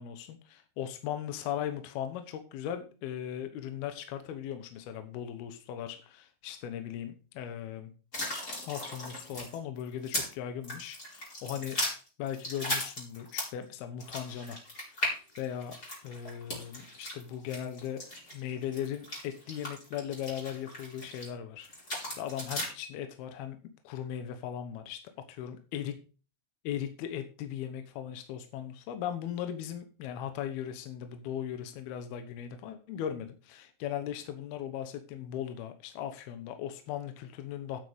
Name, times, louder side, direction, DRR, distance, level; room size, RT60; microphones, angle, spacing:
voice 1, 0.0-7.9 8.6-11.8 12.2-14.6 14.9-15.0 15.4-15.8 16.0-18.0 18.3-21.7 22.2-23.6 23.8-25.0 25.4-25.9 26.6-37.8, left 10 dB, 70° left, 8 dB, 2.8 m, -38 dB
sound 1, 8.1-10.3 10.6-13.6 14.0-21.3 21.6-22.7, left 1 dB, 20° left, 4.6 m, -37 dB
9.6 x 8.3 x 5.1 m, 0.34 s
omnidirectional pair, 4.9 m